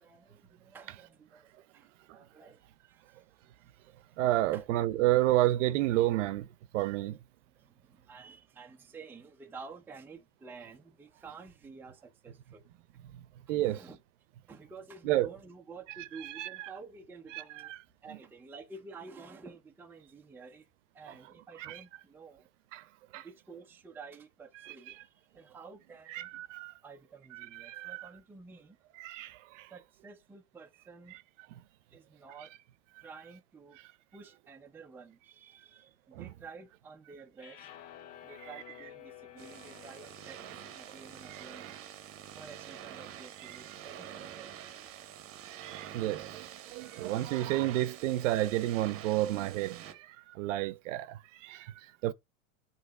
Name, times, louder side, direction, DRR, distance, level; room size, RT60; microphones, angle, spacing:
voice 1, 0.0-3.2 3.8-3.9 4.5-4.6 7.5-12.7 13.6-14.0 14.5-17.7 18.0-20.7 20.9-22.5 23.1-26.3 26.8-28.8 29.7-31.2 31.9-32.5 33.0-33.8 34.1-37.7 38.2-41.7 42.3-44.5 47.6-47.8, right 4 dB, 5° right, 0.5 m, -51 dB
voice 2, 4.2-7.2 13.1-13.2 13.5-13.8 15.0-15.3 16.0-16.7 17.3-17.8 21.1-21.2 21.6-21.8 22.7-22.9 23.1-23.3 24.6-24.7 26.1-26.7 27.3-28.1 29.0-29.7 31.1-31.2 36.1-36.3 41.3-41.4 43.4-43.6 45.4-52.1, right 15 dB, 60° right, 0.7 m, -31 dB
sound 1, 37.4-43.6, left 11 dB, 60° left, 1.2 m, -54 dB
sound 2, 39.4-49.9, right 10 dB, 30° right, 0.9 m, -47 dB
8.1 x 3.1 x 4.8 m
supercardioid pair, 130°, 41 cm